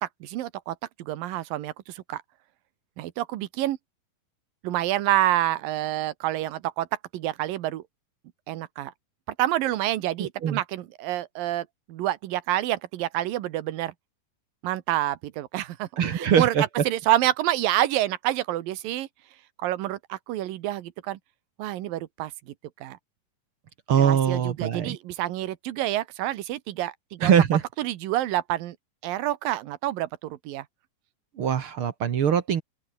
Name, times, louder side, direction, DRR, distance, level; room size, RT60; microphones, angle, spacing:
voice 1, 0.0-2.2 3.0-3.8 4.6-6.9 7.1-7.8 8.5-8.9 9.4-13.9 14.6-19.1 19.6-21.2 21.6-22.5 22.8-23.0 24.0-27.3 27.8-28.8 29.0-30.6, right 14 dB, 90° right, 2.9 m, -28 dB
voice 2, 10.2-10.6 16.0-16.6 23.9-25.0 27.2-27.6 31.4-32.6, right 8 dB, 55° right, 1.7 m, -22 dB
open air
omnidirectional pair, 3.9 m